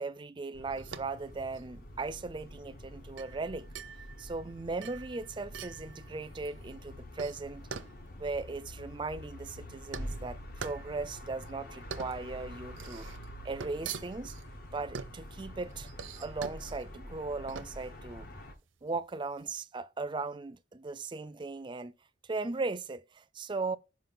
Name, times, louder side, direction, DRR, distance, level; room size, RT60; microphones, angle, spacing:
voice 1, 0.0-3.7 4.2-7.7 8.2-13.1 13.4-14.3 14.7-15.9 16.2-18.3 18.8-21.9 22.2-23.8, right 3 dB, 25° right, 0.4 m, -38 dB
sound 1, 0.5-18.5, equal, 50° left, 1.0 m, -46 dB
sound 2, 0.7-19.5, right 6 dB, 90° right, 0.6 m, -46 dB
5.3 x 4.9 x 3.8 m
head